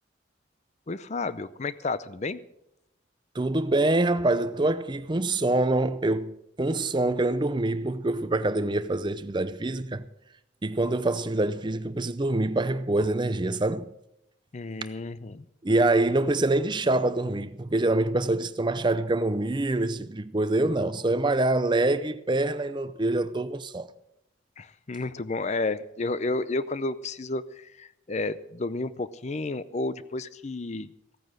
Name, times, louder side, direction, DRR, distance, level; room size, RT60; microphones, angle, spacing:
voice 1, 0.9-2.4 14.5-15.4 24.6-30.9, left 3 dB, 35° left, 0.5 m, -31 dB
voice 2, 3.3-10.1 10.6-13.8 15.6-23.9, right 2 dB, 25° right, 0.6 m, -25 dB
15.5 x 9.3 x 6.3 m
head